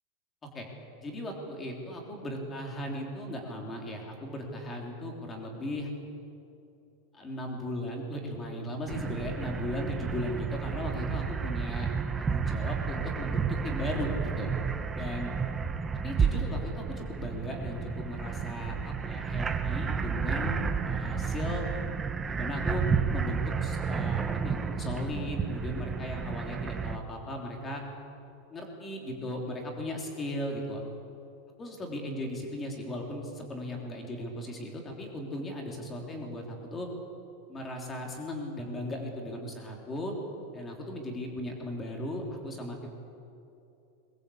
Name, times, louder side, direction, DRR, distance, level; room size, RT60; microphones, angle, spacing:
voice 1, 1.0-5.9 7.1-11.9 12.2-14.5 14.9-15.3 15.9-21.7 22.3-27.8 28.5-30.8 31.6-36.9 37.5-40.1 40.5-42.9, left 1 dB, 15° left, 1 dB, 3.2 m, -37 dB
sound 1, 8.9-27.0, right 6 dB, 10° right, 0.8 m, -31 dB
22.0 x 20.0 x 8.5 m, 2.7 s
supercardioid pair, 175°, 0 cm